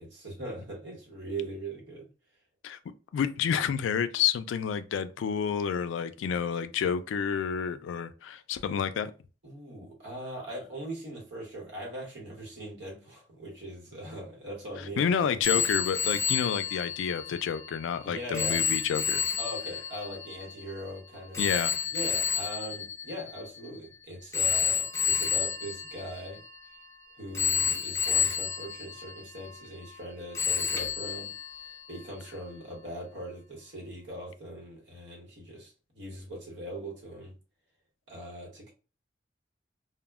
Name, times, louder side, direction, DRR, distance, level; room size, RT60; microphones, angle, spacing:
voice 1, 0.0-2.1 9.4-15.6 18.0-18.6 19.4-21.5 21.9-26.4 27.2-31.3 31.6-37.3 38.1-38.7, right 1 dB, 70° right, 1.1 m, -40 dB
voice 2, 3.1-9.1 15.0-19.2 21.4-21.7, left 7 dB, 90° left, 0.3 m, -29 dB
Telephone, 15.4-23.8 24.3-26.9 27.3-30.1 30.3-32.1, left 6 dB, 15° left, 0.5 m, -31 dB
2.1 x 2.0 x 3.4 m
head